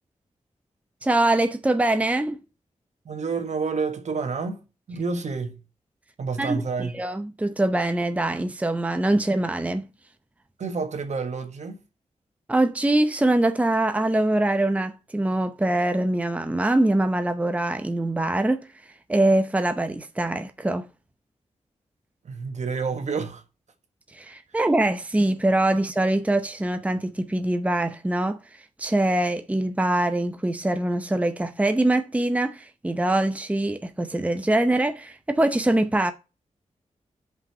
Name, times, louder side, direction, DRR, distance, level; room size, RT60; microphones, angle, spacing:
voice 1, 1.0-2.4 6.4-9.9 12.5-18.7 19.1-20.9 24.1-28.4 28.8-36.1, right 1 dB, 10° right, 0.7 m, -23 dB
voice 2, 3.0-5.6 6.2-7.0 10.6-11.8 22.2-23.4, right 4 dB, 70° right, 1.4 m, -29 dB
5.6 x 5.5 x 6.6 m
cardioid pair, 70°, 13 cm